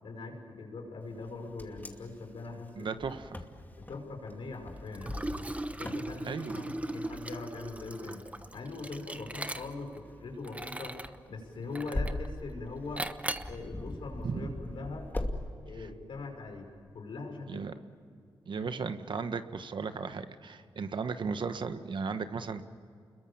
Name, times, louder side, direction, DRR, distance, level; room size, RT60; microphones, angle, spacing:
voice 1, 0.0-2.9 3.8-5.4 5.7-8.2 8.5-11.0 11.3-13.1 13.5-15.1 15.6-16.7 16.9-17.6 18.6-18.8, left 3 dB, 75° left, 3 dB, 5.8 m, -42 dB
Wind, 1.2-15.4, left 1 dB, 20° left, 2.5 m, -42 dB
voice 2, 2.7-3.4 6.3-6.7 14.2-14.5 17.5-17.7 18.5-22.6, right 5 dB, 65° right, 10 dB, 1.4 m, -36 dB
Liquid, 4.9-10.0 10.4-11.2 11.7-12.3 13.0-13.6, right 1 dB, 15° right, 1.0 m, -38 dB
29.0 x 22.0 x 7.2 m, 2.3 s
cardioid pair, 75°, 9 cm